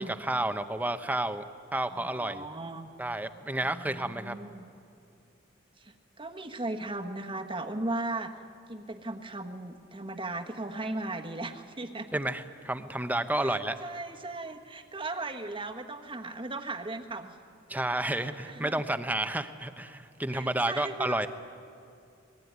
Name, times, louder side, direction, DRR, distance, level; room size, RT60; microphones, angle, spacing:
voice 1, 0.0-1.4 1.7-2.5 3.0-4.3 12.1-13.8 17.7-21.3, right 1 dB, 10° right, 9 dB, 0.9 m, -31 dB
voice 2, 1.9-2.9 3.6-4.7 5.8-8.3 8.7-12.1 13.3-17.4 18.0-18.8 20.3-21.3, right 2 dB, 25° right, 5 dB, 1.4 m, -37 dB
27.0 x 20.0 x 9.5 m, 2.4 s
head